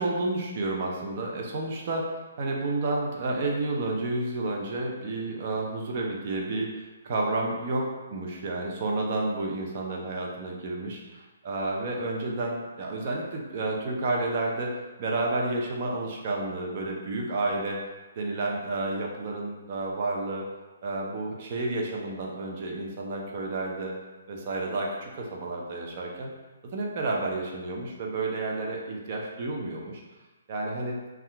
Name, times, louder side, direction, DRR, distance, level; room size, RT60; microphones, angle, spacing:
voice 1, 0.0-6.7 7.0-14.7 15.0-17.8 18.2-20.4 20.8-23.9 24.3-26.3 26.7-30.0 30.5-31.0, right 2 dB, 45° right, -1 dB, 0.6 m, -30 dB
2.8 x 2.4 x 3.3 m, 1.2 s
hypercardioid pair, 150°, 0 cm